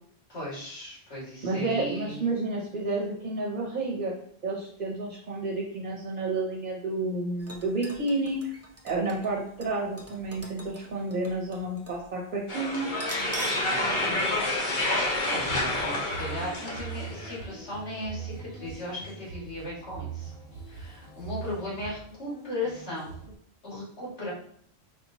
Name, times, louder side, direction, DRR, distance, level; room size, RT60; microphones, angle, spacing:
voice 1, 0.3-2.3 13.3-14.3 14.7-20.3 20.7-23.1 23.6-24.3, left 1 dB, 85° left, -6 dB, 2.1 m, -37 dB
voice 2, 1.4-4.1 4.4-8.5 8.8-12.9, right 2 dB, 50° right, -2 dB, 0.8 m, -30 dB
sound 1, 7.4-12.1 12.3-12.4 12.9-13.7 14.1-14.2 14.9-15.1 15.5-15.6, right 2 dB, 25° right, 0.4 m, -43 dB
sound 2, 12.5-17.4, left 2 dB, 50° left, 0.9 m, -29 dB
sound 3, 15.3-23.3, right 6 dB, 65° left, 1.3 m, -42 dB
5.0 x 2.9 x 2.7 m, 0.63 s
omnidirectional pair, 1.1 m